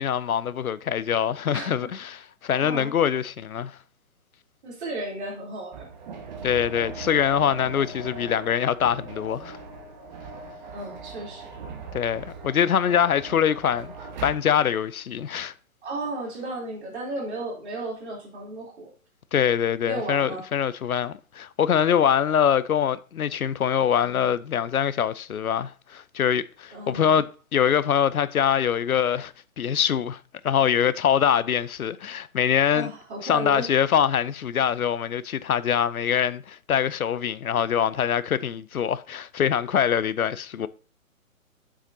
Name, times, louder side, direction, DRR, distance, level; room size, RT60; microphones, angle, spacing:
voice 1, 0.0-3.8 6.4-9.6 11.9-13.9 14.2-15.5 19.3-30.2 30.4-32.9 33.2-40.7, left 8 dB, 80° left, 0.6 m, -24 dB
voice 2, 1.5-1.9 2.6-2.9 4.6-5.9 10.7-11.5 15.8-18.9 19.8-20.4 26.7-27.2 32.7-33.7, right 2 dB, 50° right, 3.4 m, -34 dB
sound 1, 5.7-14.3, right 4 dB, 30° right, 1.4 m, -40 dB
8.7 x 7.3 x 2.7 m
figure-of-eight pair, 135°, 42 cm